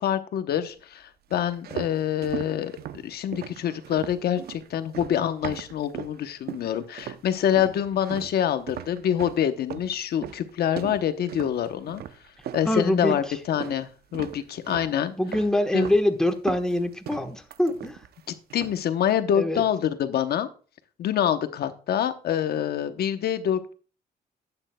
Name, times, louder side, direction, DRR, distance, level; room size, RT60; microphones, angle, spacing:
voice 1, 0.0-2.7 3.0-12.0 12.5-15.1 15.7-15.9 18.5-20.5 21.0-23.7, left 10 dB, 75° left, 10 dB, 0.9 m, -26 dB
sound 1, 1.3-6.2 6.5-7.3 7.6-13.8 14.1-14.9 15.3-16.0 16.3-18.2 18.5-18.9, right 10 dB, 70° right, 0.6 m, -38 dB
voice 2, 12.6-13.1 15.2-18.0 19.4-19.6, left 1 dB, 5° left, 6 dB, 1.2 m, -24 dB
11.5 x 8.9 x 2.2 m, 0.37 s
cardioid pair, 120°, 17 cm